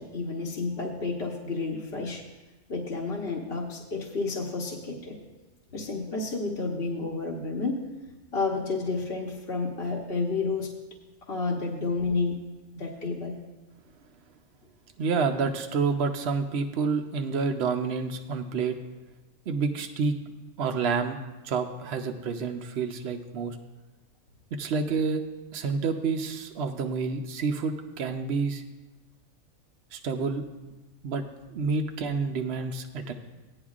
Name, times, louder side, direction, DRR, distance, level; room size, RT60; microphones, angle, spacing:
voice 1, 0.0-2.2 2.7-5.2 5.7-7.8 8.3-10.7 11.3-12.4 12.7-13.4, left 3 dB, 50° left, -2 dB, 1.2 m, -30 dB
voice 2, 15.0-18.7 19.5-20.1 20.6-21.2 21.4-23.6 24.6-25.2 25.5-28.6 29.9-30.4 31.0-31.2 31.5-33.1, right 5 dB, 60° right, 4 dB, 0.8 m, -28 dB
16.0 x 9.9 x 2.4 m, 1.1 s
omnidirectional pair, 1.4 m